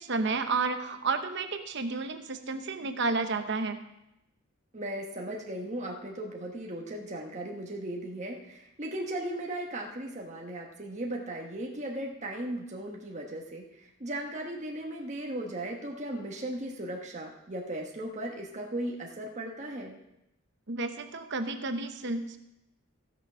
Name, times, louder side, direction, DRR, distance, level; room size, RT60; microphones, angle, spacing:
voice 1, 0.0-3.8 20.7-22.4, right 3 dB, 55° right, 8 dB, 0.9 m, -31 dB
voice 2, 4.7-20.0, right 1 dB, 35° right, 0 dB, 1.2 m, -37 dB
16.0 x 6.3 x 5.6 m, 0.87 s
head